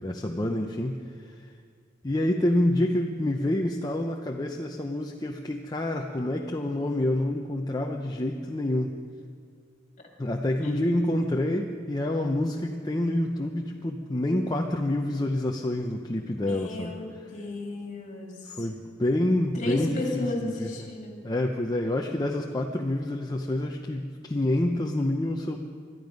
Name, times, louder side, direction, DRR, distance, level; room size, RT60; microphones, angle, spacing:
voice 1, 0.0-1.5 2.0-8.9 10.2-17.0 18.5-20.9 21.2-25.6, left 1 dB, 20° left, 2 dB, 0.7 m, -27 dB
voice 2, 16.5-18.7 19.5-21.2, left 2 dB, 40° left, 1 dB, 2.6 m, -34 dB
21.5 x 12.5 x 5.3 m, 2.1 s
head